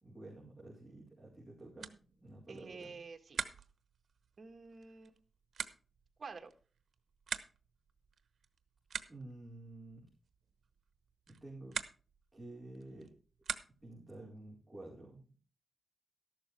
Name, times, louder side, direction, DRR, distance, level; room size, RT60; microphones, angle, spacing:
voice 1, 0.0-2.9 9.1-10.0 11.3-11.8 12.3-13.1 13.8-15.4, right 2 dB, 5° right, -6 dB, 4.5 m, -51 dB
sound 1, 1.2-14.1, right 6 dB, 80° right, 1.0 m, -47 dB
voice 2, 2.5-3.4 4.4-5.2 6.2-6.5, right 4 dB, 50° right, 5 dB, 1.8 m, -49 dB
13.5 x 12.0 x 3.5 m, 0.37 s
wide cardioid pair, 135°, 0 cm